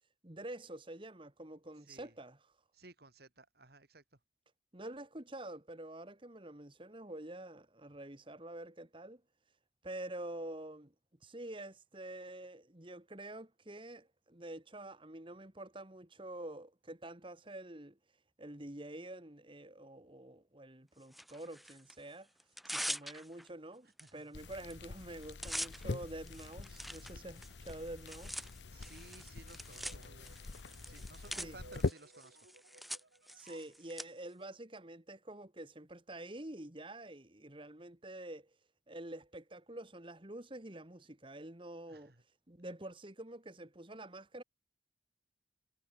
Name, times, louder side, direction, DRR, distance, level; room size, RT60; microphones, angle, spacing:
voice 1, 0.2-2.5 4.7-9.2 9.8-10.9 11.2-18.0 18.4-22.3 22.7-28.5 31.4-31.6 33.3-38.6 38.9-42.1 42.5-44.4, right 1 dB, 30° right, 1.9 m, -47 dB
voice 2, 1.8-2.1 2.7-4.2 24.0-24.2 28.7-30.4 30.8-32.4 41.9-42.2, right 2 dB, 55° right, 3.0 m, -57 dB
Tearing, 21.1-21.9 22.4-23.5 24.0-24.1 24.4-24.7 25.0-34.0, equal, ahead, 0.8 m, -44 dB
sound 1, 24.3-31.9, left 3 dB, 70° left, 0.7 m, -43 dB
sound 2, 28.1-33.8, right 2 dB, 80° right, 5.6 m, -61 dB
head